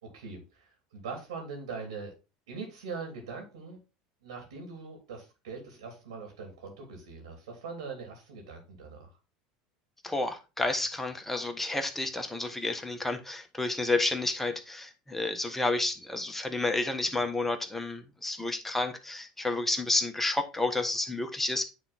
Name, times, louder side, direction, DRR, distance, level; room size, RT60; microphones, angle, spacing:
voice 1, 0.0-2.1 2.5-3.8 4.2-9.1, right 4 dB, 85° right, 3.0 m, -42 dB
voice 2, 10.0-21.7, left 2 dB, 10° left, 1.4 m, -30 dB
9.3 x 3.8 x 4.3 m
hypercardioid pair, 90°, 3 cm